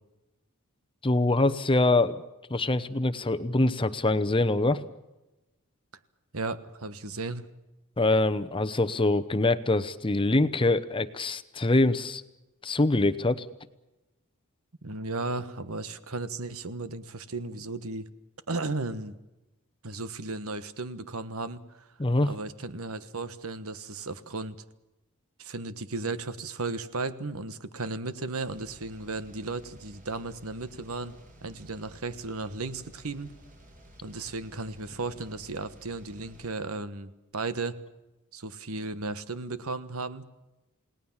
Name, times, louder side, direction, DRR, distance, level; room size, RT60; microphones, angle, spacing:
voice 1, 1.0-2.2 2.5-4.8 8.0-12.2 12.6-13.5 22.0-22.3, left 2 dB, 25° left, 11 dB, 0.9 m, -24 dB
voice 2, 6.3-7.5 14.8-18.1 18.5-19.1 19.8-21.9 22.2-24.6 25.4-31.1 31.4-33.3 34.0-37.7 38.3-40.3, right 3 dB, 70° right, 13 dB, 1.4 m, -35 dB
sound 1, 28.4-36.5, equal, 40° right, 5.8 m, -53 dB
29.0 x 18.5 x 7.3 m, 0.99 s
head